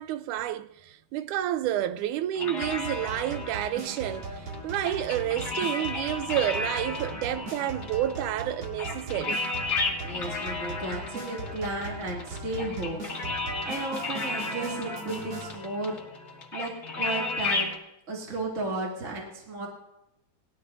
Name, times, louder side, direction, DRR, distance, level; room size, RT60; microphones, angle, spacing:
voice 1, 0.0-9.4, right 12 dB, 85° right, 2.1 m, -30 dB
sound 1, 2.4-17.8, left 3 dB, 25° left, 2.0 m, -34 dB
sound 2, 2.6-15.5, right 3 dB, 55° right, 3.2 m, -39 dB
voice 2, 10.0-13.1 13.3-16.0 16.5-17.8 18.1-19.7, right 2 dB, 25° right, 2.7 m, -34 dB
20.5 x 14.0 x 2.7 m
omnidirectional pair, 3.4 m